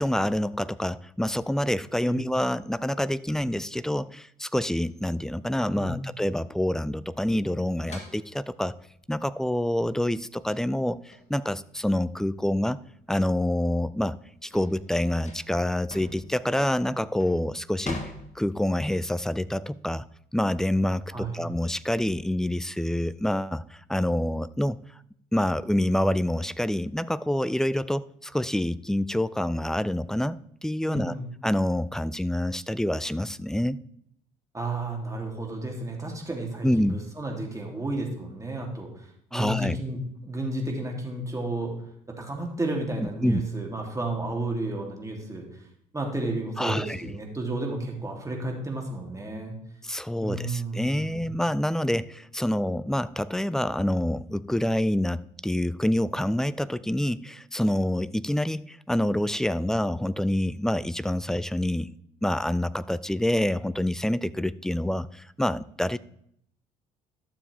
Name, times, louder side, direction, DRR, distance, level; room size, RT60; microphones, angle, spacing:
voice 1, 0.0-8.7 9.1-12.8 13.1-18.0 18.4-20.1 20.3-24.8 25.3-31.1 31.4-33.8 36.6-37.0 39.3-39.8 43.0-43.4 46.6-47.1 49.8-61.9 62.2-66.0, left 1 dB, ahead, 17 dB, 0.4 m, -27 dB
voice 2, 5.7-6.1 21.1-21.4 30.8-31.3 34.5-41.7 42.1-45.4 45.9-49.5 50.2-51.3, right 2 dB, 15° right, 1 dB, 2.9 m, -32 dB
sound 1, 7.9-12.9 13.3-18.9, left 3 dB, 35° left, 2.0 m, -44 dB
12.0 x 7.1 x 3.4 m, 0.69 s
figure-of-eight pair, 55°, 20 cm